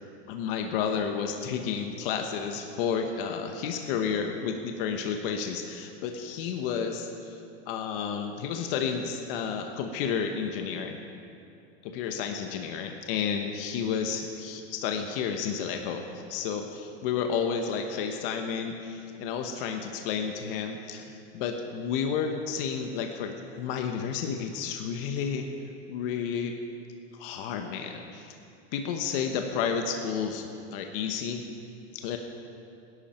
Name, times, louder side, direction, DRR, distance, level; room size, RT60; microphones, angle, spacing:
voice 1, 0.3-7.4 7.7-11.0 11.8-25.5 25.9-26.5 27.2-28.3 28.7-31.4 31.9-32.2, left 6 dB, 55° left, 4 dB, 1.2 m, -31 dB
19.0 x 11.5 x 4.5 m, 2.5 s
supercardioid pair, 145°, 34 cm